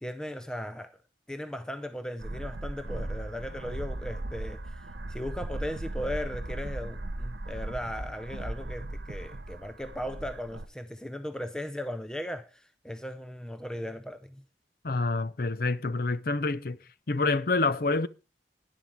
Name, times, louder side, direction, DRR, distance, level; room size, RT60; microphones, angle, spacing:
voice 1, 0.0-1.0 1.3-14.5, equal, 5° left, 0.5 m, -37 dB
sound 1, 2.2-10.7, right 1 dB, 80° right, 1.0 m, -37 dB
voice 2, 14.8-16.8 17.1-18.1, left 3 dB, 55° left, 0.6 m, -27 dB
11.0 x 10.0 x 4.6 m
head